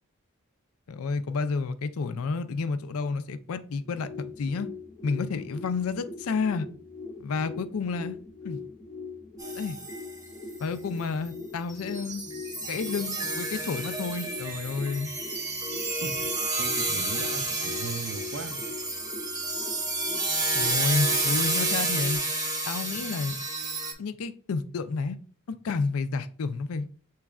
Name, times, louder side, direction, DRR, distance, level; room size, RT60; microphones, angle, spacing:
voice 1, 0.9-4.7 5.0-6.7 7.2-8.2 8.4-8.6 9.6-9.8 10.6-12.2 12.7-15.1 20.5-22.2 22.7-23.4 24.0-25.2 25.5-26.9, left 4 dB, 65° left, 0.4 m, -30 dB
sound 1, 3.8-22.2, left 4 dB, 15° left, 0.5 m, -42 dB
sound 2, 9.4-10.2 10.5-10.6 11.0-11.4 11.7-23.9, right 2 dB, 15° right, 0.8 m, -30 dB
voice 2, 16.6-18.6, right 4 dB, 55° right, 0.6 m, -38 dB
6.9 x 3.1 x 2.4 m
head